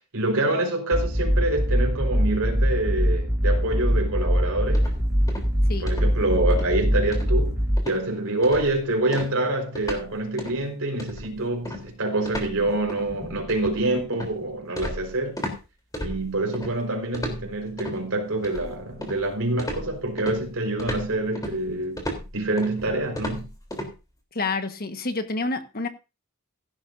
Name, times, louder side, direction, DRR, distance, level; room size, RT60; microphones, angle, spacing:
voice 1, 0.1-4.9 5.8-15.4 16.0-22.0 22.3-23.5, right 2 dB, 70° right, 4.5 m, -26 dB
sound 1, 0.9-7.8, equal, 5° right, 5.2 m, -22 dB
sound 2, 4.7-5.6 5.9-6.2 6.5-6.7 7.1-7.5 7.8-8.0 8.4-8.8 9.1-10.1 10.4-10.6 11.0-15.6 15.9-16.7 17.1-18.0 18.4-19.3 19.6-23.9, equal, 15° left, 3.5 m, -35 dB
voice 2, 24.3-25.9, left 3 dB, 45° left, 1.4 m, -28 dB
16.0 x 11.5 x 2.6 m
head